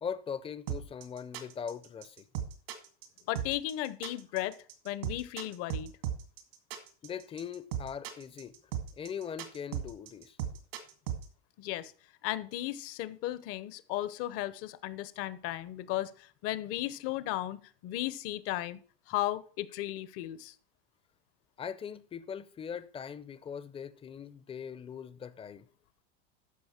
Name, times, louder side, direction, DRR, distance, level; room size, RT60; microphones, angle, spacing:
voice 1, 0.0-2.2 7.0-8.6 9.0-10.4 21.6-25.7, left 7 dB, 20° left, 0.6 m, -40 dB
sound 1, 0.7-11.2, right 10 dB, 75° right, 2.1 m, -37 dB
voice 2, 3.3-4.6 4.8-5.9 11.6-11.9 12.2-18.8 19.1-20.5, left 14 dB, 50° left, 0.9 m, -35 dB
13.5 x 5.2 x 4.4 m
supercardioid pair, 115°, 29 cm